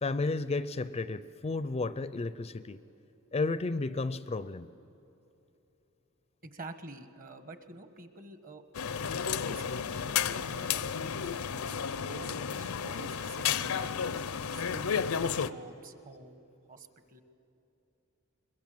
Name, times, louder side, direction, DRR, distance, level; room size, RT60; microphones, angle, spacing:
voice 1, 0.0-2.8 3.3-4.7, left 3 dB, 30° left, 15 dB, 0.4 m, -32 dB
voice 2, 6.4-8.6 9.2-11.3 12.0-14.2 14.5-16.4 16.7-17.2, right 2 dB, 40° right, 9 dB, 1.3 m, -48 dB
sound 1, 8.7-15.5, left 7 dB, 80° left, 0.6 m, -32 dB
22.5 x 22.0 x 7.7 m, 2.9 s
head